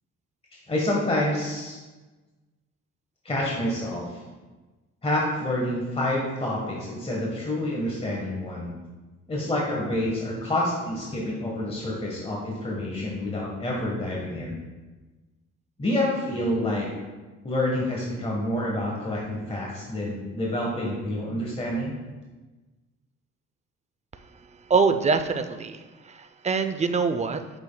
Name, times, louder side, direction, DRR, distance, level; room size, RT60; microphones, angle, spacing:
voice 1, 0.7-1.8 3.2-4.2 5.0-8.7 9.3-14.6 15.8-16.9 17.4-21.9, left 1 dB, 20° left, -3 dB, 1.3 m, -28 dB
voice 2, 24.7-25.8 26.1-27.4, right 5 dB, 25° right, 9 dB, 0.5 m, -24 dB
8.7 x 6.1 x 2.3 m, 1.2 s
cardioid pair, 90°, 30 cm